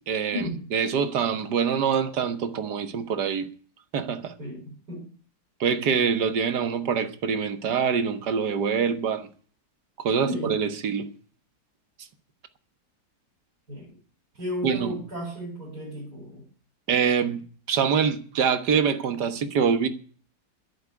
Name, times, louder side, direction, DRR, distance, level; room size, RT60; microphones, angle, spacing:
voice 1, 0.1-3.5 3.9-4.3 5.6-9.3 10.0-11.1 14.6-15.0 16.9-17.4 17.7-19.9, right 6 dB, 80° right, 1.8 m, -25 dB
voice 2, 4.4-5.1 10.1-10.5 13.7-13.9 14.4-16.4, equal, 65° right, 6.9 m, -34 dB
10.5 x 8.1 x 9.7 m
omnidirectional pair, 1.8 m